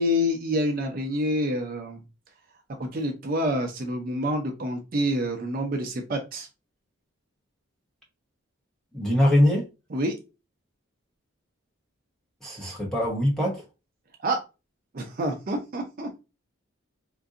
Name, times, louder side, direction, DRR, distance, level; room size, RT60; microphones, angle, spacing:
voice 1, 0.0-2.0 2.8-6.5 9.9-10.1 14.2-14.4 14.9-16.2, equal, 45° right, 0.5 m, -27 dB
voice 2, 8.9-9.7 12.4-13.6, left 1 dB, ahead, 0.9 m, -22 dB
3.7 x 2.6 x 2.4 m
head